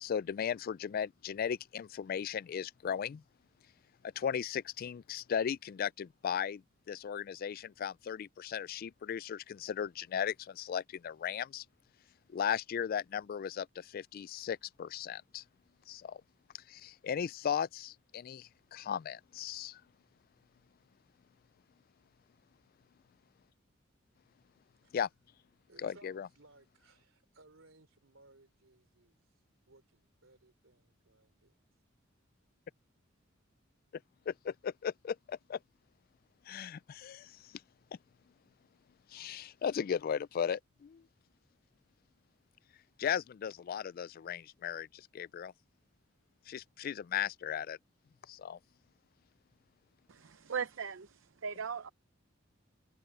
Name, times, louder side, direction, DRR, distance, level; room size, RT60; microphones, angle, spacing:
voice 1, 0.0-3.2 4.2-6.6 6.9-11.6 12.3-15.4 15.9-16.2 16.7-19.8 24.9-25.1 25.8-26.3 34.3-35.6 36.5-37.3 39.1-41.0 43.0-44.9 45.1-45.5 46.5-47.8 48.3-48.6, left 8 dB, 45° left, 0.3 m, -36 dB
voice 2, 25.7-29.2 29.7-31.5, right 2 dB, 85° right, 3.2 m, -62 dB
voice 3, 50.1-51.9, right 6 dB, 70° right, 0.7 m, -39 dB
head